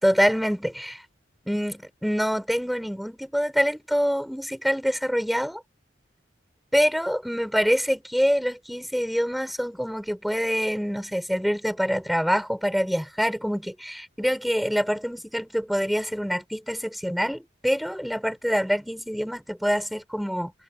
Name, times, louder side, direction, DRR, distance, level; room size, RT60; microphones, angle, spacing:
voice 1, 0.0-1.0 1.5-5.6 6.7-20.5, equal, ahead, 6.1 m, -25 dB
head